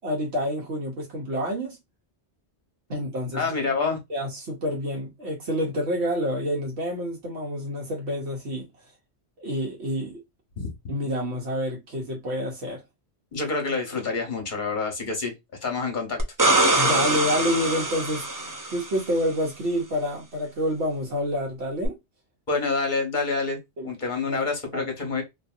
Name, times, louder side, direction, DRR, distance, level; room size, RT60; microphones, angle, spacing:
voice 1, 0.0-1.8 2.9-3.5 4.1-8.7 9.4-10.2 10.9-12.8 16.7-22.0 23.8-23.9 24.3-24.4 24.7-24.9, equal, 80° right, 1.2 m, -28 dB
voice 2, 3.3-4.0 10.6-10.7 13.3-15.3 15.6-16.2 22.5-23.6 23.8-25.2, left 4 dB, 45° left, 1.1 m, -27 dB
sound 1, 16.2-19.0 21.8-21.9, right 2 dB, 35° right, 0.3 m, -23 dB
2.7 x 2.7 x 2.4 m
omnidirectional pair, 1.1 m